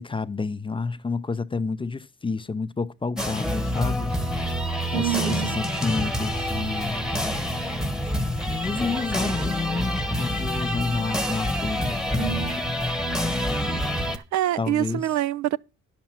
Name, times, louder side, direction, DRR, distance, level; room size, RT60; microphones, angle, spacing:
voice 1, 0.0-4.1 4.9-7.1 8.5-12.9 14.6-15.0, left 4 dB, 15° left, 0.5 m, -30 dB
sound 1, 3.2-14.2, equal, ahead, 1.1 m, -27 dB
voice 2, 4.9-5.6 12.2-12.5 13.9-15.6, right 13 dB, 70° right, 0.5 m, -26 dB
10.5 x 7.1 x 5.9 m
cardioid pair, 90°, 30 cm